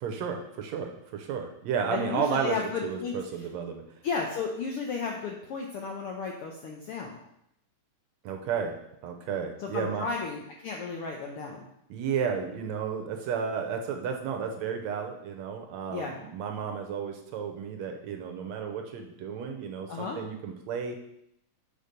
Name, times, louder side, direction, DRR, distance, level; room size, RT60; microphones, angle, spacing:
voice 1, 0.0-2.6 2.8-3.8 8.2-8.8 9.0-10.1 11.9-21.0, right 6 dB, 75° right, 4 dB, 1.9 m, -32 dB
voice 2, 1.9-3.1 4.0-7.2 9.6-11.7 15.9-16.2 19.9-20.2, left 5 dB, 75° left, 0 dB, 1.3 m, -33 dB
6.7 x 4.9 x 5.2 m, 0.78 s
omnidirectional pair, 3.4 m